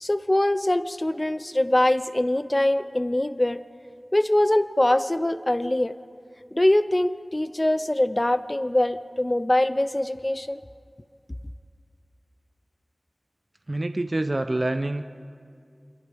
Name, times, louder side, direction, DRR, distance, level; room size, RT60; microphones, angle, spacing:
voice 1, 0.0-3.6 4.1-5.9 6.5-10.6, left 1 dB, 30° left, 12 dB, 0.7 m, -23 dB
voice 2, 13.7-15.0, right 2 dB, 45° right, 7 dB, 0.6 m, -26 dB
28.5 x 25.5 x 3.6 m, 2.3 s
wide cardioid pair, 55°, 0 cm